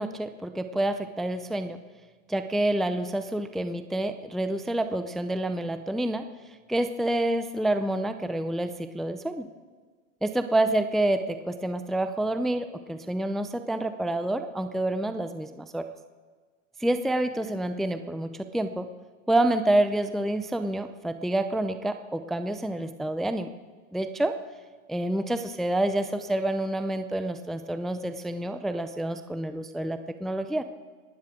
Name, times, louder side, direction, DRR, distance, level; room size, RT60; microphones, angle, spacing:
voice 1, 0.0-1.8 2.3-6.3 6.7-9.5 10.2-15.9 16.8-18.9 19.3-23.5 23.9-24.4 24.9-30.6, right 1 dB, ahead, 9 dB, 0.4 m, -28 dB
27.5 x 11.5 x 3.7 m, 1.5 s
hypercardioid pair, 115°, 40 cm